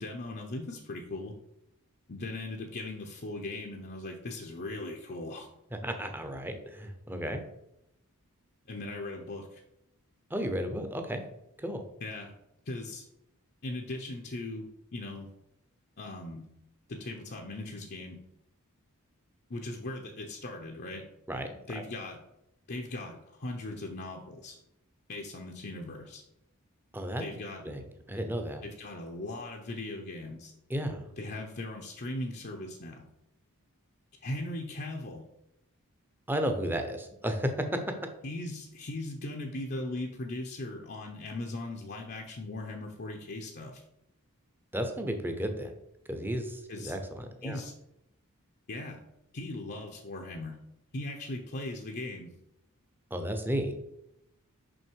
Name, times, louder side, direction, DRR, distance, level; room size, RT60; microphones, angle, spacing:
voice 1, 0.0-1.4 2.1-5.5 8.7-9.6 12.0-12.3 12.7-13.1 13.6-15.3 16.0-16.5 16.9-18.2 19.5-21.1 21.7-22.2 22.7-24.6 25.1-26.2 27.2-27.7 28.6-30.5 31.2-33.0 34.2-35.2 38.2-43.8 46.7-46.9 47.4-47.7 48.7-49.0 49.3-50.6 50.9-52.3, left 2 dB, 50° left, 1 dB, 0.8 m, -39 dB
voice 2, 5.8-7.4 10.3-11.2 11.6-11.8 21.3-21.8 26.9-27.2 27.6-28.6 30.7-31.1 36.3-37.8 44.7-45.7 46.1-47.6 53.1-53.7, equal, 10° right, 6 dB, 0.8 m, -33 dB
6.3 x 5.6 x 4.7 m, 0.82 s
head